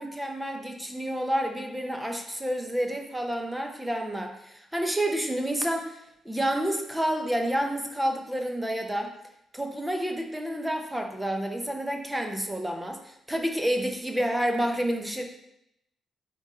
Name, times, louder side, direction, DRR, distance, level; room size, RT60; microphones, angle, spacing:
voice 1, 0.0-9.1 9.5-15.2, equal, 5° right, 3 dB, 0.7 m, -29 dB
8.7 x 3.8 x 4.2 m, 0.81 s
cardioid pair, 180°, 0 cm